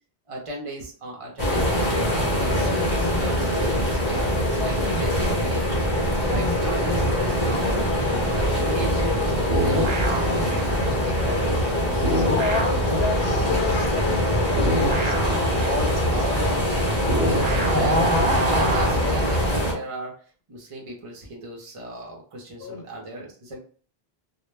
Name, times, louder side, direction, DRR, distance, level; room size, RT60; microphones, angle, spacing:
voice 1, 0.3-5.6 6.2-7.8 8.1-12.3 12.6-12.8 15.6-16.7 17.2-20.2 20.5-23.6, right 1 dB, 40° right, 0.6 m, -36 dB
sound 1, 1.4-19.7, equal, 30° left, 0.9 m, -23 dB
voice 2, 2.5-3.7 4.6-5.4 6.2-6.6 11.7-11.8 12.1-15.8 16.1-16.6 22.6-22.8, left 6 dB, 80° left, 0.8 m, -32 dB
sound 2, 9.5-11.8 12.0-19.6, right 1 dB, 60° right, 0.9 m, -26 dB
2.1 x 2.1 x 3.2 m
omnidirectional pair, 1.0 m